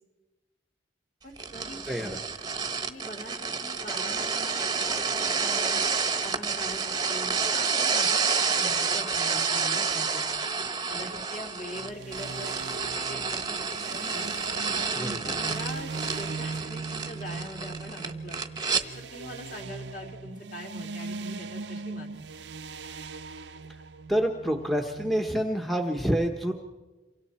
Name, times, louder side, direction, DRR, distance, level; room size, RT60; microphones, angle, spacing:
voice 1, 1.2-2.1 2.8-4.6 5.1-5.8 6.2-10.3 10.9-12.5 13.1-13.6 13.9-14.3 14.8-18.4 19.0-22.1, equal, 45° left, 2 dB, 2.9 m, -42 dB
sound 1, 1.4-18.8, right 5 dB, 20° right, 1.0 m, -29 dB
voice 2, 1.9-2.2 14.9-15.3 24.1-26.5, equal, ahead, 2 dB, 1.0 m, -27 dB
sound 2, 11.8-25.4, right 4 dB, 70° right, 0.7 m, -40 dB
28.0 x 24.0 x 4.4 m, 1.2 s
head